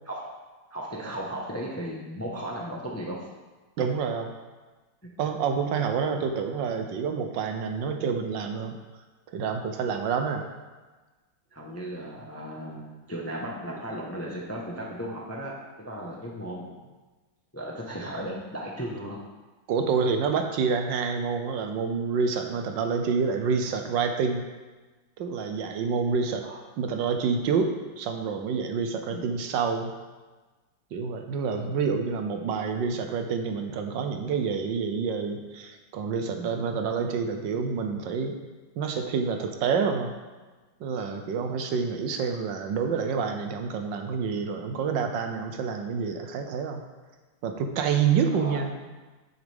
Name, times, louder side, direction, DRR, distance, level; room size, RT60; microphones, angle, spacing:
voice 1, 0.7-3.3 11.5-12.8 13.1-16.7 17.5-19.2 26.4-26.6 29.1-29.3 48.3-48.6, right 1 dB, 15° left, -2 dB, 0.5 m, -35 dB
voice 2, 3.8-4.3 5.2-8.8 9.3-10.5 19.7-24.4 25.2-26.5 26.8-29.9 30.9-38.4 38.8-40.1 40.8-46.8 47.4-48.7, right 5 dB, 70° right, 5 dB, 1.3 m, -28 dB
9.7 x 7.3 x 3.5 m, 1.3 s
omnidirectional pair, 2.2 m